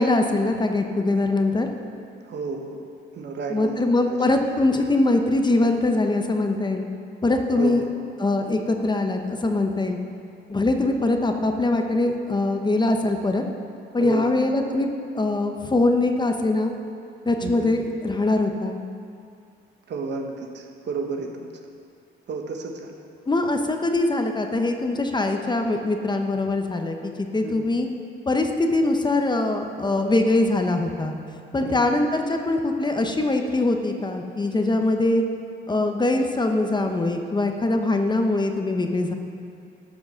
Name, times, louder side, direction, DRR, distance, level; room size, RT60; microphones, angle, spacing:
voice 1, 0.0-1.7 3.5-6.8 7.2-7.8 8.2-10.0 10.5-13.4 13.9-16.7 17.2-18.8 23.3-27.9 28.3-31.1 31.5-35.2 35.7-39.1, left 2 dB, 20° left, 4 dB, 0.9 m, -22 dB
voice 2, 2.3-2.9 3.1-4.0 7.6-7.9 14.0-14.3 17.4-17.7 19.9-21.5 22.3-23.0 27.4-27.6 31.6-31.9, right 4 dB, 60° right, 2 dB, 1.3 m, -32 dB
12.5 x 6.1 x 6.3 m, 2.4 s
cardioid pair, 90°, 20 cm